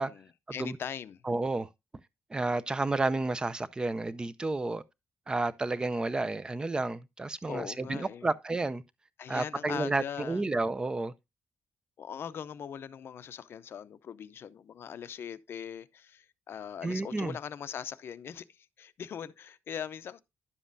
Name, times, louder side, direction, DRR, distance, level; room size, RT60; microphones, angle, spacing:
voice 1, 0.0-1.2 7.5-8.3 9.2-10.4 12.0-20.2, left 8 dB, 55° left, 0.6 m, -41 dB
voice 2, 1.2-1.7 2.3-4.8 5.3-8.8 9.3-11.1 16.8-17.4, right 2 dB, 15° right, 0.5 m, -31 dB
11.0 x 7.3 x 2.6 m
wide cardioid pair, 160°, 5 cm